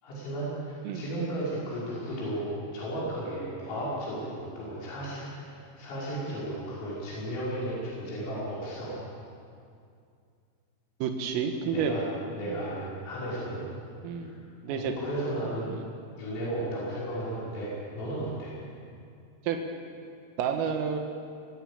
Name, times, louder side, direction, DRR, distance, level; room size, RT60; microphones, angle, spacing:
voice 1, 0.0-9.0 11.7-12.0 12.4-13.6 14.2-14.4 14.7-15.7 16.2-18.5, right 1 dB, 90° left, -8 dB, 8.3 m, -34 dB
voice 2, 11.0-11.9 12.4-12.6 14.0-14.3 14.6-14.9 15.8-15.9 19.4-19.6 20.4-21.0, right 7 dB, 85° right, 4 dB, 4.1 m, -30 dB
25.0 x 15.5 x 8.6 m, 2.4 s
omnidirectional pair, 5.8 m